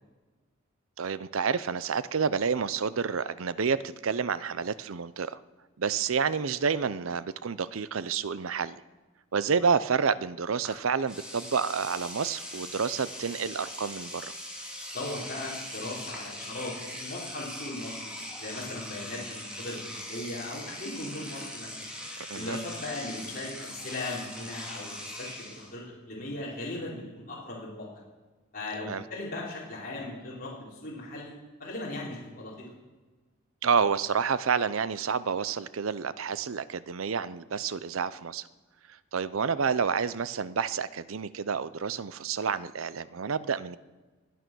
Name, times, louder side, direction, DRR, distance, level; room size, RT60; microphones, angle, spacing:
voice 1, 1.0-5.4 5.8-8.8 9.3-14.3 22.3-22.6 28.9-29.0 33.6-38.5 38.9-43.8, right 6 dB, 75° right, 16 dB, 0.6 m, -29 dB
Engine / Domestic sounds home sounds, 10.6-10.8 11.1-25.7, left 1 dB, 5° right, 2.9 m, -41 dB
voice 2, 14.9-18.1 18.4-21.9 22.3-27.9 28.5-31.3 31.6-32.7, left 2 dB, 45° left, -6 dB, 4.3 m, -38 dB
24.0 x 9.4 x 6.2 m, 1.3 s
head